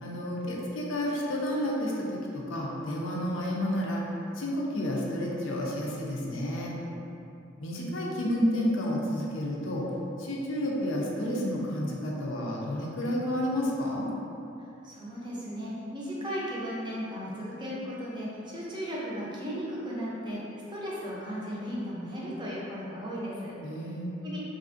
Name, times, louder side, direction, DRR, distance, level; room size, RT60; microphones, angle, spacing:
voice 1, 0.0-4.0 4.3-6.7 7.6-9.9 10.2-14.1 23.6-24.1, left 1 dB, 80° left, -3 dB, 0.5 m, -30 dB
voice 2, 14.8-20.4 20.7-23.5 24.2-24.4, equal, 25° right, -6 dB, 0.5 m, -36 dB
3.4 x 2.4 x 2.5 m, 2.8 s
head